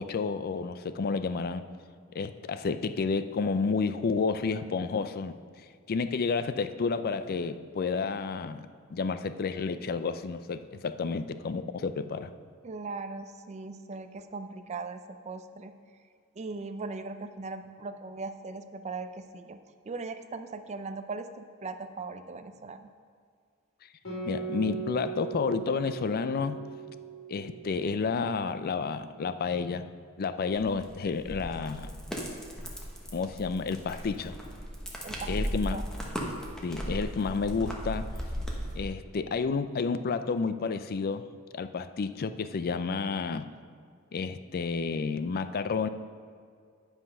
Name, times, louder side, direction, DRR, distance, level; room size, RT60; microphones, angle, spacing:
voice 1, 0.0-1.6 2.1-5.4 5.9-8.6 8.9-12.3 24.3-26.6 27.3-29.9 30.2-31.9 33.1-34.4 35.3-35.8 36.6-38.1 38.8-41.3 41.5-43.5 44.1-45.9, left 4 dB, 45° left, 12 dB, 0.4 m, -30 dB
voice 2, 12.6-15.7 16.4-19.6 19.9-22.9 35.0-35.3 35.7-35.8, right 3 dB, 30° right, 8 dB, 0.4 m, -39 dB
Guitar, 24.0-29.0, right 6 dB, 75° left, 2.5 m, -39 dB
sound 1, 30.5-38.8, equal, 5° left, 1.2 m, -36 dB
9.9 x 5.8 x 5.4 m, 2.1 s
head